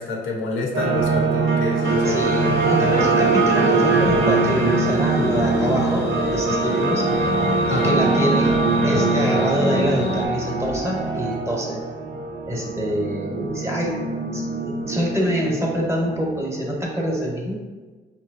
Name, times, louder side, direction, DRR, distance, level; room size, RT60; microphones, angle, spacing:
voice 1, 0.0-2.3 7.7-8.0, left 3 dB, 85° left, 0 dB, 0.8 m, -27 dB
sound 1, 0.7-17.1, right 3 dB, 75° right, 0.7 m, -22 dB
sound 2, 1.8-10.3, left 5 dB, 60° left, 0.5 m, -30 dB
voice 2, 2.0-7.3 7.7-8.5 8.8-11.8 12.5-13.9 14.3-17.6, equal, 15° right, -2 dB, 1.0 m, -25 dB
sound 3, 2.6-11.9, right 3 dB, 5° left, 0.5 m, -35 dB
5.1 x 3.0 x 2.5 m, 1.3 s
cardioid pair, 90°, 20 cm